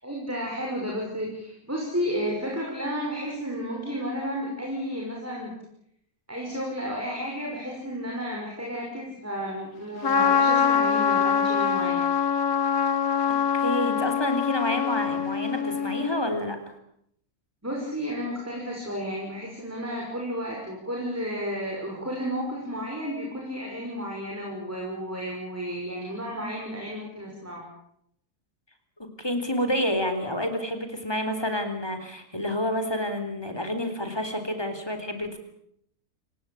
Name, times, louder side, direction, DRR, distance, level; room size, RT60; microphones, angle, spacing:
voice 1, 0.0-5.5 6.3-12.1 17.6-27.7, equal, 10° right, -2 dB, 5.9 m, -32 dB
Trumpet, 10.0-16.2, left 7 dB, 85° left, 2.4 m, -24 dB
voice 2, 13.5-16.6 29.2-35.4, left 1 dB, 15° left, 7 dB, 3.9 m, -29 dB
28.0 x 18.0 x 8.7 m, 0.74 s
omnidirectional pair, 1.6 m